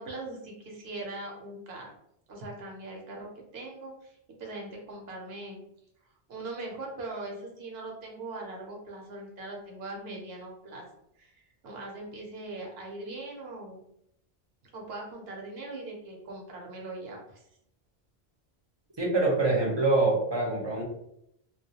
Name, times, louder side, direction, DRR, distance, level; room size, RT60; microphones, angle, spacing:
voice 1, 0.0-1.9 2.3-5.6 6.3-10.8 11.2-13.8 14.7-17.4, right 2 dB, 70° right, 0 dB, 0.9 m, -41 dB
voice 2, 19.0-20.8, right 2 dB, 30° right, -2 dB, 0.6 m, -25 dB
2.3 x 2.2 x 2.7 m, 0.76 s
omnidirectional pair, 1.1 m